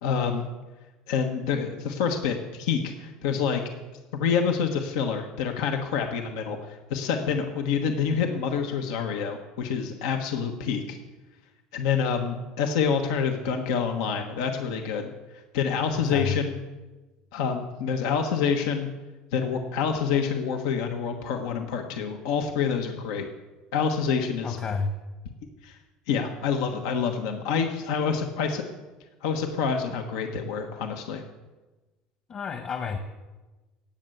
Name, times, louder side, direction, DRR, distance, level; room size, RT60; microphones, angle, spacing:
voice 1, 0.0-0.4 1.1-3.6 4.1-11.0 11.7-15.1 15.5-16.6 17.3-18.9 19.3-23.3 23.7-24.6 25.6-25.8 26.1-28.6 29.2-31.2, left 6 dB, 90° left, 4 dB, 1.3 m, -27 dB
voice 2, 24.4-24.9 32.3-33.0, left 5 dB, 40° left, 6 dB, 1.2 m, -30 dB
16.5 x 6.8 x 9.1 m, 1.2 s
supercardioid pair, 120°, 3 cm